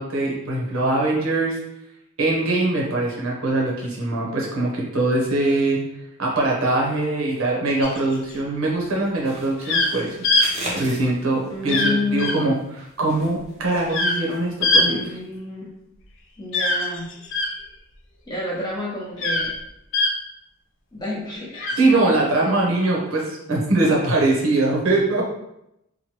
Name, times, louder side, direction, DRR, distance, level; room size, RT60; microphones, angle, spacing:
voice 1, 0.0-1.6 2.2-5.9 6.2-10.2 10.7-15.1 21.8-25.3, right 2 dB, 75° right, -3 dB, 0.8 m, -22 dB
sound 1, 7.8-8.3 9.7-9.9 10.2-10.5 11.7-11.9 12.2-12.3 13.9-14.2 14.6-14.9 16.5-17.5 19.2-19.5 19.9-20.1 21.5-21.7, left 2 dB, 60° left, 0.5 m, -21 dB
sound 2, 9.2-11.7 12.5-13.9 14.2-14.4 14.7-14.8, right 1 dB, 30° right, 0.6 m, -36 dB
voice 2, 11.5-12.5 14.8-15.7 16.4-17.1 18.3-19.5 20.9-21.7, left 2 dB, 20° left, -5 dB, 0.7 m, -29 dB
3.0 x 2.2 x 2.9 m, 0.83 s
head